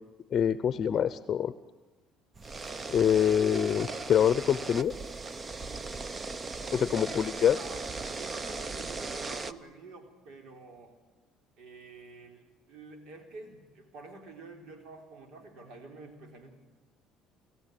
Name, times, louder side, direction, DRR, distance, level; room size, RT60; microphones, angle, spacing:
voice 1, 0.3-1.5 2.9-4.9 6.7-7.6, left 9 dB, 40° left, 14 dB, 0.7 m, -25 dB
sound 1, 2.3-9.5, right 3 dB, 25° right, 0.8 m, -38 dB
voice 2, 6.7-11.0 11.6-16.5, right 3 dB, 65° right, 4 dB, 3.9 m, -48 dB
29.5 x 14.5 x 9.2 m, 1.2 s
cardioid pair, 110°, 0 cm